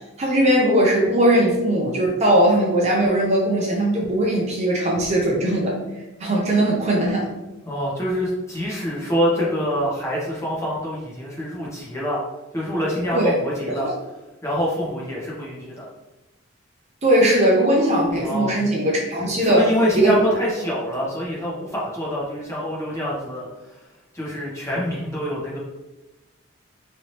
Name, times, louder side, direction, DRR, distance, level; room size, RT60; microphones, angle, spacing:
voice 1, 0.2-5.8 6.2-7.3 13.1-13.4 13.6-13.9 17.0-19.6 19.9-20.2, right 1 dB, 35° right, -2 dB, 0.5 m, -19 dB
voice 2, 7.6-12.2 12.5-13.9 14.4-15.9 18.2-18.6 19.4-23.5 24.1-25.6, equal, 15° left, -6 dB, 0.9 m, -25 dB
3.1 x 2.7 x 2.8 m, 1.0 s
head